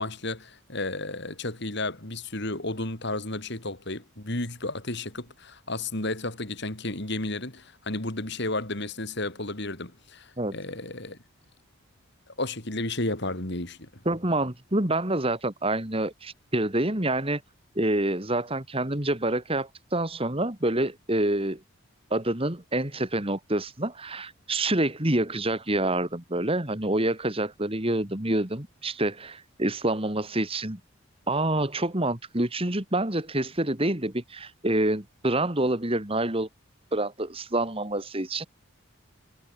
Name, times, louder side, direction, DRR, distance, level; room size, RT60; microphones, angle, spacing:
voice 1, 0.0-11.2 12.4-13.9, left 2 dB, 55° left, 3.7 m, -32 dB
voice 2, 14.1-17.4 17.8-21.6 22.1-30.8 31.3-36.5 36.9-38.4, right 1 dB, 25° right, 2.5 m, -27 dB
head